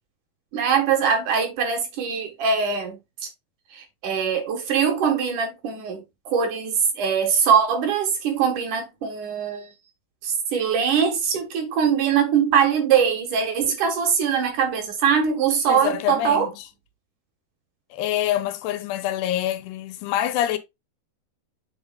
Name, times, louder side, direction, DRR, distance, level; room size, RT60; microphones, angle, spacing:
voice 1, 0.5-3.3 3.7-9.7 10.2-16.5, right 7 dB, 60° right, 2.5 m, -22 dB
voice 2, 15.7-16.5 17.9-20.6, left 12 dB, 85° left, 2.8 m, -25 dB
8.0 x 6.1 x 2.2 m
omnidirectional pair, 4.7 m